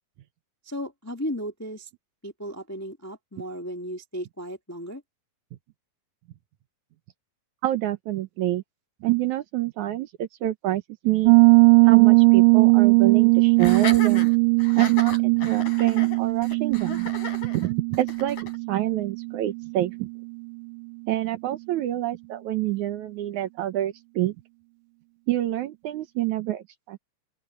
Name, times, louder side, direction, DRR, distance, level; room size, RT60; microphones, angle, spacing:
voice 1, 0.6-1.9 2.2-5.0, equal, 10° left, 0.9 m, -35 dB
voice 2, 7.6-8.6 9.0-11.4 11.8-14.3 14.8-17.1 17.5-18.4 18.7-20.1 21.1-24.4 25.3-27.0, right 14 dB, 70° right, 2.1 m, -27 dB
Piano, 11.3-19.8, right 32 dB, 85° right, 2.3 m, -19 dB
Laughter, 13.6-18.6, left 3 dB, 65° left, 8.5 m, -35 dB
open air
omnidirectional pair, 3.9 m